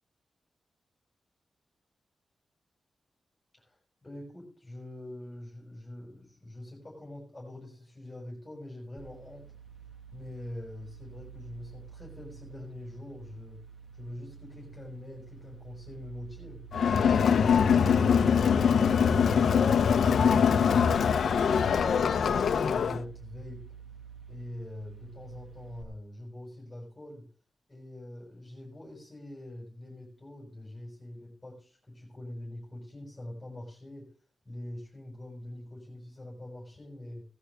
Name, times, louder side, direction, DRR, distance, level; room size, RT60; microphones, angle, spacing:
voice 1, 3.5-9.5 10.1-13.6 13.9-19.6 19.9-23.7 24.3-27.3 27.7-34.1 34.5-37.2, left 1 dB, 5° left, -3 dB, 5.5 m, -44 dB
sound 1, 9.0-25.8, right 7 dB, 40° right, 1.8 m, -50 dB
Crowd, 16.7-23.0, left 7 dB, 75° left, 0.8 m, -23 dB
17.0 x 11.5 x 3.6 m, 0.41 s
wide cardioid pair, 180°, 0 cm